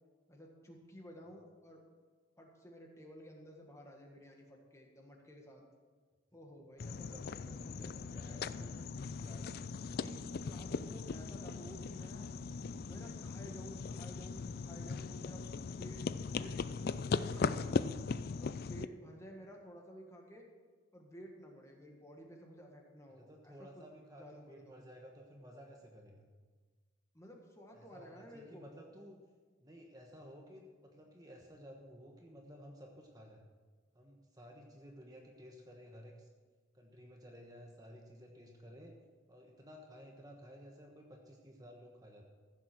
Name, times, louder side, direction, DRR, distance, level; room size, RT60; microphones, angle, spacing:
voice 1, 0.3-1.8 2.4-5.6 6.3-7.2 8.1-8.7 9.2-9.5 9.9-12.3 12.8-15.4 15.8-16.0 16.3-17.9 18.4-20.5 20.9-23.8 24.2-24.8 27.1-28.7, equal, 15° left, 1 dB, 1.6 m, -53 dB
sound 1, 6.8-18.9, left 5 dB, 50° left, 0.4 m, -39 dB
voice 2, 6.8-8.8 23.1-26.3 27.7-29.2 29.6-33.5 33.9-36.3 36.7-39.0 39.3-42.2, equal, 20° right, 1 dB, 1.2 m, -55 dB
15.0 x 7.3 x 6.1 m, 1.4 s
head